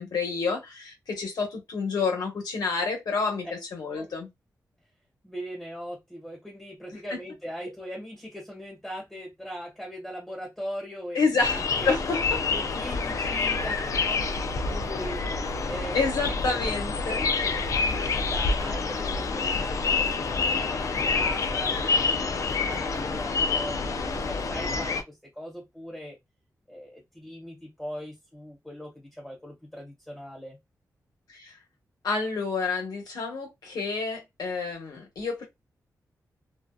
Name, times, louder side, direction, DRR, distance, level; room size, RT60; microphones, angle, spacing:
voice 1, 0.0-4.3 7.1-7.2 11.1-12.2 15.9-17.2 31.3-31.5 32.0-35.4, left 4 dB, 80° left, 1.1 m, -29 dB
voice 2, 5.2-12.0 12.5-15.2 15.6-16.0 16.3-16.6 17.1-26.2 26.7-30.6, equal, 5° left, 1.1 m, -40 dB
sound 1, 11.4-25.0, left 4 dB, 55° left, 0.4 m, -27 dB
2.6 x 2.3 x 2.2 m
wide cardioid pair, 115°, 7 cm